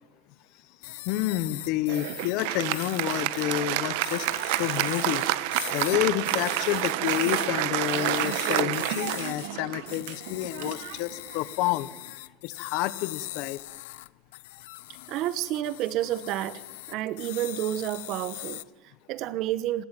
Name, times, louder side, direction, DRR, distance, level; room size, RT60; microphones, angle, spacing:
sound 1, 0.8-3.6 4.0-7.5 7.9-9.5 9.9-18.6, left 20 dB, 85° left, 0.8 m, -41 dB
voice 1, 1.0-5.2 5.7-11.9 12.4-13.6, left 15 dB, 55° left, 1.2 m, -29 dB
Applause, 1.9-11.7, right 17 dB, 65° right, 1.3 m, -29 dB
voice 2, 15.1-16.6 16.9-19.8, right 13 dB, 45° right, 1.2 m, -30 dB
27.5 x 20.0 x 9.2 m
cardioid pair, 170°, 0 cm